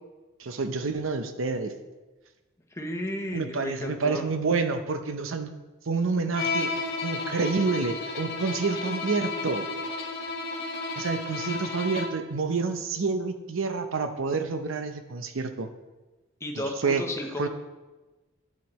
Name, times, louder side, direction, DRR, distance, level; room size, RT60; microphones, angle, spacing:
voice 1, 0.4-1.7 3.3-5.5 5.9-6.7 7.0-9.7 11.0-15.7 16.8-17.0 17.4-17.5, right 4 dB, 85° right, 8 dB, 0.7 m, -28 dB
voice 2, 2.7-4.2 16.4-17.5, equal, 15° left, 2 dB, 0.9 m, -33 dB
Bowed string instrument, 6.3-12.3, left 3 dB, 55° left, 1.1 m, -32 dB
10.0 x 7.3 x 3.1 m, 1.2 s
head